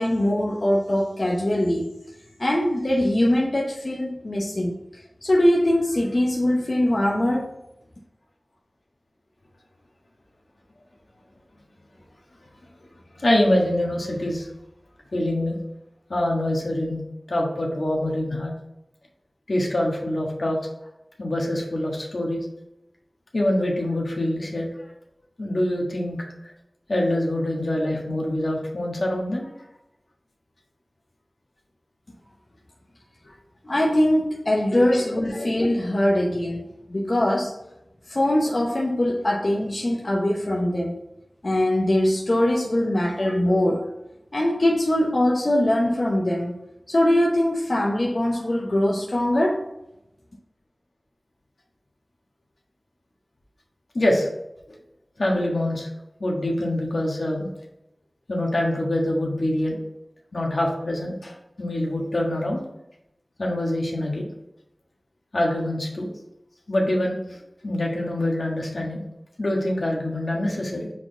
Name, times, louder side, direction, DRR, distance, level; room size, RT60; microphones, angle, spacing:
voice 1, 0.0-1.9 2.4-4.7 5.2-7.5 33.6-36.6 36.9-37.5 38.1-41.0 41.4-43.9 44.3-46.5 46.9-49.6, left 1 dB, 55° left, -2 dB, 0.8 m, -22 dB
voice 2, 13.1-14.5 15.1-15.6 16.1-17.0 17.3-18.5 19.5-20.6 21.2-22.5 23.3-24.7 25.4-26.2 26.9-29.5 53.9-54.3 54.7-54.8 55.2-55.9 56.2-57.5 58.3-59.8 60.3-62.6 63.4-64.3 65.3-66.1 66.7-69.0 69.4-70.9, left 1 dB, 85° left, -1 dB, 1.4 m, -25 dB
4.7 x 4.1 x 5.6 m, 0.87 s
wide cardioid pair, 60°, 0 cm